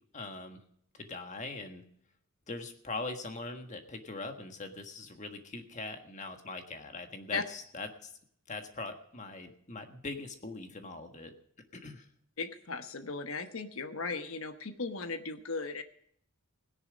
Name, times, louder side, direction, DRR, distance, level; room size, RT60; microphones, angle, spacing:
voice 1, 0.1-0.6 0.9-1.8 2.5-8.1 8.5-11.3 11.7-12.1, left 3 dB, 35° left, 6 dB, 1.5 m, -41 dB
voice 2, 12.4-15.8, left 4 dB, 70° left, 9 dB, 1.1 m, -37 dB
17.0 x 10.5 x 5.1 m, 0.66 s
head